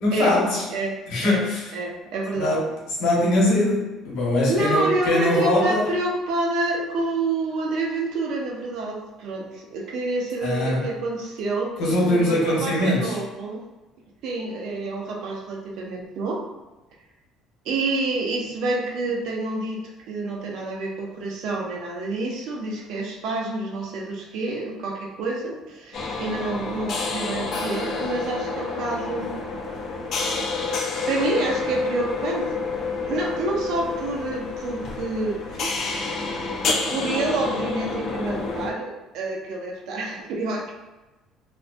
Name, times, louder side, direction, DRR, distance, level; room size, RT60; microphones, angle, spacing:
voice 1, 0.0-0.6 1.1-1.6 2.4-2.6 3.0-5.9 10.4-10.8 11.8-13.2, left 1 dB, 75° left, -4 dB, 1.0 m, -22 dB
voice 2, 0.7-1.5 1.7-2.7 4.5-13.7 14.2-16.4 17.6-19.8 20.1-29.3 31.1-32.5 33.0-35.9 36.9-40.7, right 2 dB, 65° right, 0 dB, 0.5 m, -28 dB
sound 1, 25.9-38.7, left 4 dB, 45° left, 0.3 m, -29 dB
2.4 x 2.1 x 2.4 m, 1.1 s
cardioid pair, 155°, 0 cm